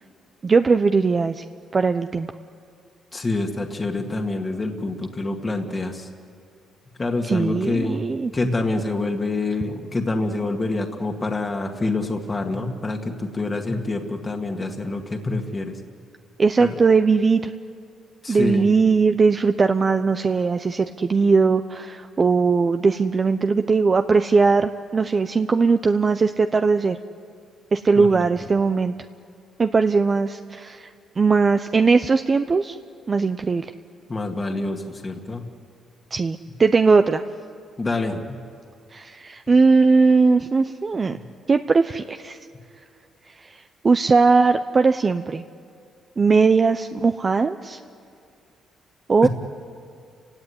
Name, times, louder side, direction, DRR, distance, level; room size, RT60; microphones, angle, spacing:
voice 1, 0.4-1.4 1.7-2.3 7.2-8.3 16.4-17.5 18.3-27.0 27.7-28.9 29.6-30.9 31.2-32.8 33.1-33.7 36.1-37.2 38.9-41.2 41.5-42.4 43.4-43.5 43.8-45.4 46.2-47.8 49.1-49.3, right 4 dB, 35° right, 8 dB, 0.8 m, -19 dB
voice 2, 3.1-6.1 7.0-8.0 8.3-15.7 16.6-16.8 18.2-18.6 28.0-28.2 34.1-35.4 37.8-38.4 49.2-49.3, left 2 dB, 25° left, 3 dB, 2.0 m, -26 dB
30.0 x 17.0 x 9.7 m, 2.3 s
cardioid pair, 90°, 0 cm